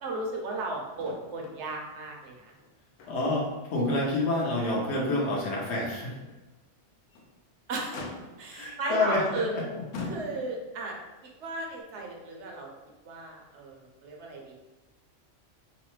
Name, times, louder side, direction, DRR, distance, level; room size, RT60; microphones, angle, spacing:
voice 1, 0.0-2.5 7.7-8.0 8.4-9.5 10.1-11.0 11.4-12.7 13.0-14.5, right 2 dB, 75° right, 0 dB, 0.9 m, -35 dB
Motor vehicle (road), 1.0-1.6 1.9-2.0 2.5-3.5 3.9-4.0 4.6-4.7 6.9-7.4 7.9-8.6 9.4-9.5 9.9-10.7 11.8-11.9, left 3 dB, 90° left, 0.9 m, -42 dB
voice 2, 3.1-6.2 8.5-10.1, left 2 dB, 65° left, -3 dB, 1.1 m, -28 dB
3.1 x 2.1 x 3.0 m, 1.1 s
omnidirectional pair, 1.2 m